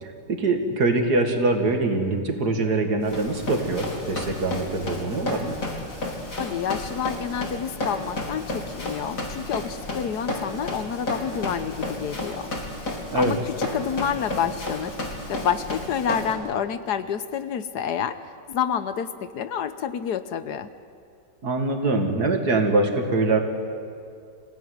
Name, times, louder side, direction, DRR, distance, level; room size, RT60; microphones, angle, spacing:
voice 1, 0.0-5.6 13.1-13.4 21.4-23.4, right 3 dB, 65° right, 4 dB, 2.7 m, -23 dB
Run, 3.1-16.3, left 1 dB, 50° left, 3.4 m, -32 dB
voice 2, 6.4-12.5 12.9-15.0 15.3-18.2 18.5-20.7, left 8 dB, 70° left, 12 dB, 1.4 m, -28 dB
27.0 x 16.0 x 9.5 m, 2.3 s
omnidirectional pair, 1.9 m